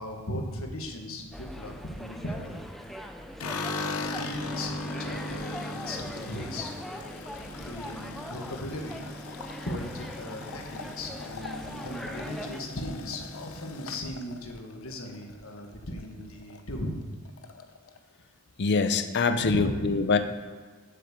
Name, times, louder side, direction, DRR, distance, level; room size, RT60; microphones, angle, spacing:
voice 1, 0.0-2.6 3.5-6.8 7.6-9.0 9.6-17.0 19.4-20.0, left 1 dB, 70° left, 2 dB, 1.6 m, -37 dB
sound 1, 1.3-12.6, equal, ahead, 0.5 m, -41 dB
sound 2, 3.4-15.7 16.0-16.6 16.9-17.0 17.3-18.0, left 2 dB, 90° left, 0.8 m, -39 dB
voice 2, 18.6-20.2, left 4 dB, 55° left, 9 dB, 0.6 m, -24 dB
7.8 x 6.7 x 6.6 m, 1.5 s
head